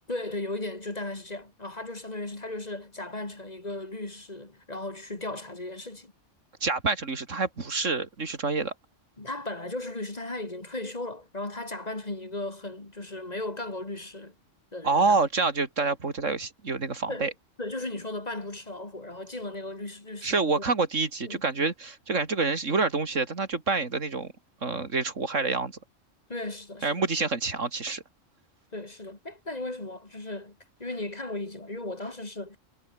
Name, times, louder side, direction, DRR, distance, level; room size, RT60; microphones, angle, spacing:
voice 1, 0.1-6.1 9.2-14.4 14.7-15.2 17.1-17.3 17.6-20.6 21.2-21.4 26.3-27.0 28.7-32.6, left 2 dB, 35° left, 2.6 m, -36 dB
voice 2, 6.6-8.7 14.8-17.3 20.2-24.3 24.6-25.7 26.8-28.0, right 4 dB, 80° right, 3.0 m, -27 dB
omnidirectional pair, 1.3 m